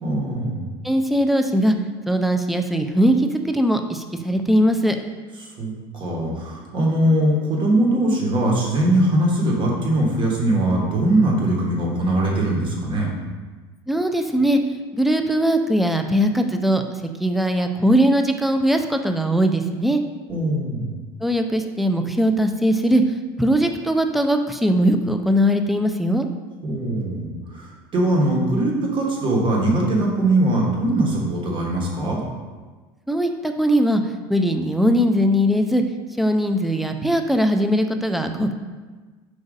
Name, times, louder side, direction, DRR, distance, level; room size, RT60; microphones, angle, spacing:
voice 1, 0.0-0.6 5.6-13.1 20.3-20.9 26.6-32.2, right 1 dB, 40° right, -2 dB, 1.2 m, -21 dB
voice 2, 0.8-1.7 2.1-5.0 13.9-16.8 17.2-20.0 21.2-23.0 23.4-26.3 33.1-34.0 34.3-35.8 36.2-38.5, equal, ahead, 5 dB, 0.3 m, -20 dB
4.9 x 2.5 x 3.9 m, 1.3 s
supercardioid pair, 95°, 13 cm